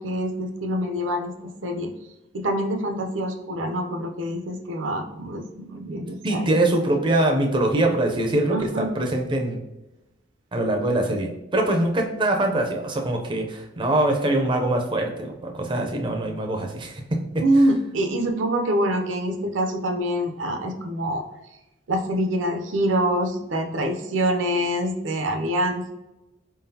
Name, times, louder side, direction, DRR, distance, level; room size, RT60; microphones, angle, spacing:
voice 1, 0.0-1.3 1.6-1.9 2.3-6.5 8.5-8.9 17.4-21.2 21.9-25.9, right 1 dB, 75° right, 5 dB, 0.6 m, -25 dB
voice 2, 6.2-9.6 10.5-17.0, right 1 dB, 25° right, 2 dB, 0.5 m, -23 dB
4.5 x 3.8 x 2.7 m, 0.96 s
head